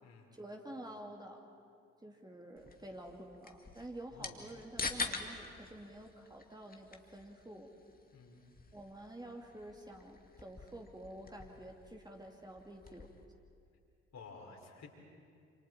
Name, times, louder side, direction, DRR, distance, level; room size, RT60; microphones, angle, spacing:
voice 1, 0.3-1.4 2.0-7.7 8.7-13.1, right 1 dB, 10° right, 1 dB, 2.6 m, -49 dB
sound 1, 2.6-13.2, left 4 dB, 25° left, 2.3 m, -46 dB
voice 2, 8.1-8.4 14.1-14.9, left 5 dB, 50° left, 0 dB, 4.6 m, -53 dB
28.5 x 27.5 x 4.6 m, 2.3 s
figure-of-eight pair, 45°, 36 cm